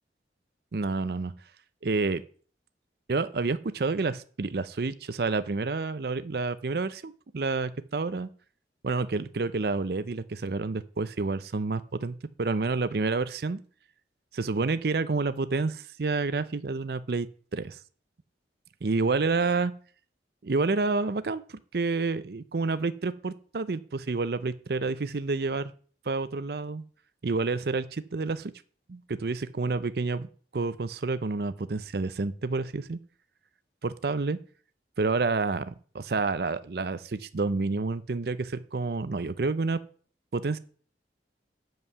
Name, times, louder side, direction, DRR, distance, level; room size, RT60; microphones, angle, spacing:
voice 1, 0.7-1.3 1.8-2.2 3.1-8.3 8.8-13.6 14.3-17.3 17.5-17.8 18.8-19.7 20.4-25.7 26.1-26.8 27.2-28.5 28.9-30.3 30.5-33.0 33.8-34.4 35.0-39.8 40.3-40.6, right 3 dB, 60° right, 14 dB, 0.5 m, -29 dB
9.2 x 5.5 x 6.8 m, 0.43 s
head